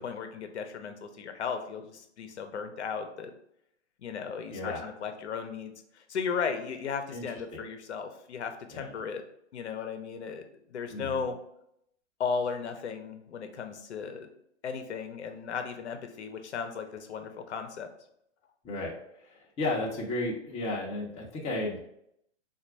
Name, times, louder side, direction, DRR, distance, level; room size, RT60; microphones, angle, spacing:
voice 1, 0.0-3.3 4.0-9.2 9.5-11.4 12.2-14.3 14.6-17.9, left 6 dB, 70° left, 7 dB, 0.9 m, -36 dB
voice 2, 4.5-4.9 7.1-7.2 7.5-7.6 8.7-9.0 10.9-11.2 18.6-18.9 19.2-21.8, left 2 dB, 15° left, -2 dB, 0.8 m, -33 dB
4.0 x 2.5 x 4.6 m, 0.74 s
hypercardioid pair, 125°, 35 cm